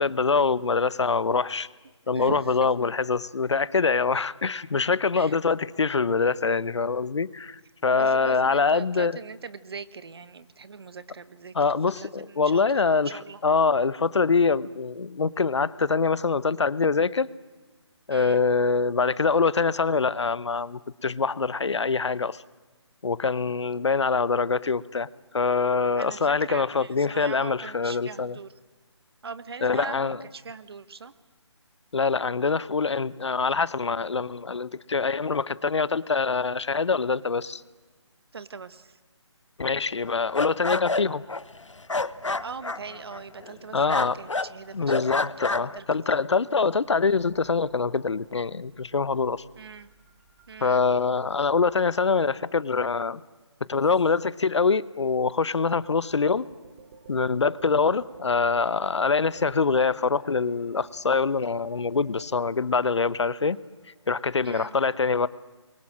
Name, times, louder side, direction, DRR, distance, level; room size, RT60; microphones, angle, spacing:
voice 1, 0.0-1.7 2.1-9.2 11.5-13.1 13.4-17.3 18.1-22.4 23.0-25.1 25.3-28.4 29.6-30.2 31.9-37.6 39.6-41.2 43.7-44.2 44.7-49.4 50.6-53.2 53.7-56.5 57.1-63.6 64.1-65.3, left 4 dB, 70° left, 19 dB, 1.0 m, -24 dB
voice 2, 2.1-2.5 5.1-5.4 7.9-13.4 18.1-18.4 26.0-28.5 29.2-31.1 38.3-39.0 42.4-46.2 49.5-49.9 50.5-50.8 64.4-64.8, right 5 dB, 55° right, 14 dB, 1.5 m, -41 dB
sound 1, 40.0-43.6 43.9-44.5 44.8-45.8, left 3 dB, 90° left, 1.1 m, -29 dB
sound 2, 46.8-52.5 53.7-54.5 55.7-64.4, right 4 dB, 35° right, 4.5 m, -53 dB
28.0 x 23.5 x 7.7 m, 1.3 s
figure-of-eight pair, 155°, 15 cm